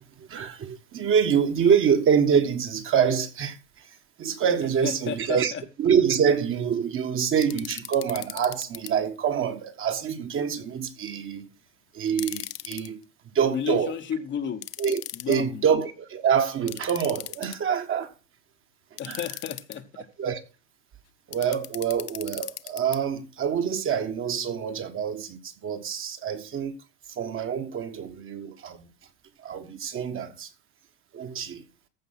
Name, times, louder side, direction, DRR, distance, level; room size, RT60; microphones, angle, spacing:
voice 1, 0.0-5.5 5.8-11.4 11.9-13.0 13.3-13.9 14.8-15.0 15.3-18.1 19.1-19.2 20.2-20.4 21.3-26.7 27.1-28.9 29.4-30.5 31.1-31.6, right 7 dB, 25° right, 1.3 m, -26 dB
voice 2, 4.8-5.6 13.5-14.6 15.1-15.6 19.0-20.1, left 8 dB, 25° left, 1.0 m, -32 dB
sound 1, 7.4-8.9 12.1-12.9 14.6-15.4 16.7-17.8 19.0-19.8 21.3-23.0, left 16 dB, 75° left, 0.8 m, -38 dB
14.5 x 5.0 x 5.8 m
hypercardioid pair, 110°, 47 cm